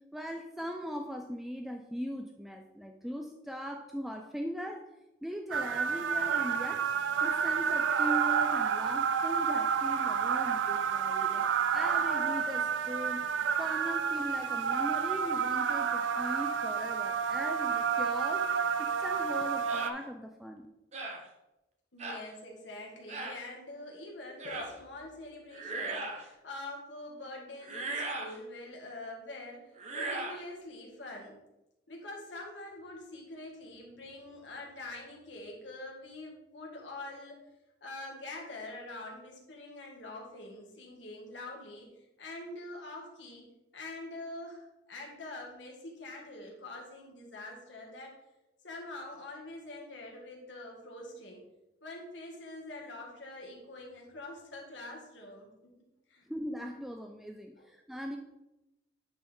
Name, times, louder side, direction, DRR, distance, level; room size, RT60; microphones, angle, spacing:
voice 1, 0.0-4.9 5.2-6.9 7.2-11.4 11.7-13.2 13.6-20.7 56.3-58.2, equal, ahead, 4 dB, 0.4 m, -40 dB
sound 1, 5.5-19.9, right 7 dB, 80° right, 0.4 m, -30 dB
sound 2, 19.7-20.0 20.9-21.2 22.0-22.2 23.1-23.4 24.4-24.7 25.5-26.3 27.6-28.3 29.8-30.4, right 2 dB, 35° right, 0.9 m, -37 dB
voice 2, 21.9-31.4 31.9-37.4 37.8-43.5 43.7-48.2 48.6-51.4 51.8-55.5 56.1-56.3 57.6-57.7, left 2 dB, 70° left, -1 dB, 1.8 m, -45 dB
9.4 x 4.4 x 3.5 m, 0.95 s
head